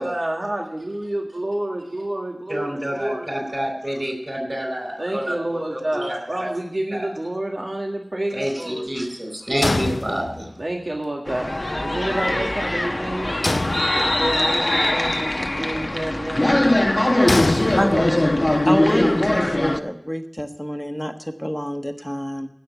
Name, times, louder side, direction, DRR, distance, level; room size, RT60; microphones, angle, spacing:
voice 1, 0.0-3.3 5.0-8.9 9.6-10.2 10.6-13.6 14.0-18.1, right 1 dB, 65° right, 0 dB, 1.9 m, -29 dB
voice 2, 2.5-6.5 6.9-7.1 8.3-10.5, equal, 35° right, 5 dB, 4.5 m, -28 dB
sound 1, 9.6-10.7 13.4-14.5 17.3-18.4, left 2 dB, 80° left, 0.4 m, -25 dB
sound 2, 11.3-19.8, left 1 dB, 45° left, 0.9 m, -21 dB
voice 3, 18.6-22.5, equal, 5° left, 5 dB, 1.3 m, -27 dB
16.5 x 6.4 x 8.1 m, 0.78 s
wide cardioid pair, 45°, 0 cm